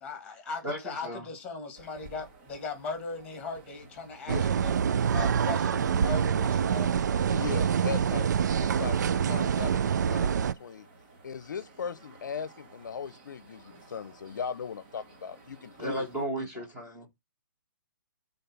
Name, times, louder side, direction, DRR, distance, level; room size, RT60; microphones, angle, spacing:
voice 1, 0.0-4.7 5.1-6.9 15.8-16.0, left 4 dB, 10° left, 2.0 m, -38 dB
voice 2, 0.6-1.2 7.5-7.6 15.8-17.1, right 1 dB, 10° right, 1.7 m, -35 dB
sound 1, 1.7-16.3, right 2 dB, 30° right, 1.7 m, -55 dB
sound 2, 4.3-10.5, right 7 dB, 60° right, 0.3 m, -26 dB
voice 3, 7.3-10.9 11.2-16.1 16.4-16.6, left 7 dB, 65° left, 0.7 m, -38 dB
5.4 x 3.8 x 5.9 m
hypercardioid pair, 165°, 11 cm